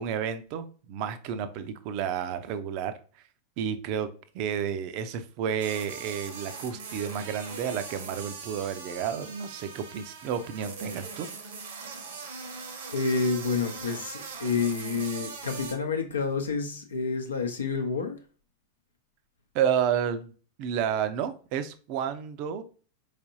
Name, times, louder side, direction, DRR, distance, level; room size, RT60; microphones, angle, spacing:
voice 1, 0.0-3.0 3.6-4.1 4.3-11.3 19.5-20.3 20.6-22.6, right 8 dB, 45° right, 0.5 m, -31 dB
sound 1, 5.6-15.8, right 5 dB, 60° right, 0.9 m, -41 dB
voice 2, 12.9-18.2, left 4 dB, 70° left, 0.7 m, -29 dB
4.4 x 3.3 x 2.7 m
figure-of-eight pair, 90°, 0 cm